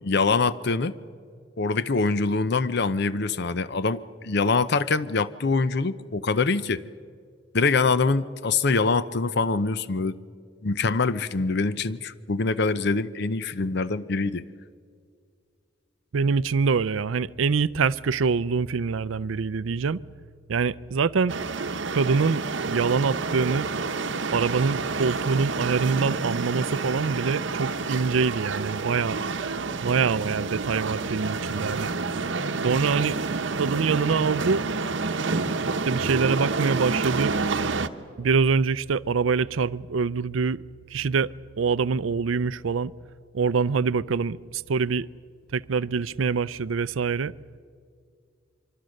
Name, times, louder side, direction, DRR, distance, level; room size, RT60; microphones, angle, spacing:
voice 1, 0.0-1.0 1.6-6.8 7.5-10.1 10.6-14.4, left 4 dB, 55° left, 0.7 m, -24 dB
voice 2, 16.1-20.0 20.5-21.4 21.9-23.7 24.3-29.2 29.8-31.9 32.6-33.2 33.5-34.6 35.9-37.4 38.2-40.6 40.9-41.3 41.6-42.9 43.3-45.1 45.5-47.3, right 5 dB, 85° right, 0.5 m, -25 dB
sound 1, 21.3-37.9, right 4 dB, 70° right, 0.9 m, -29 dB
25.0 x 24.0 x 6.5 m
head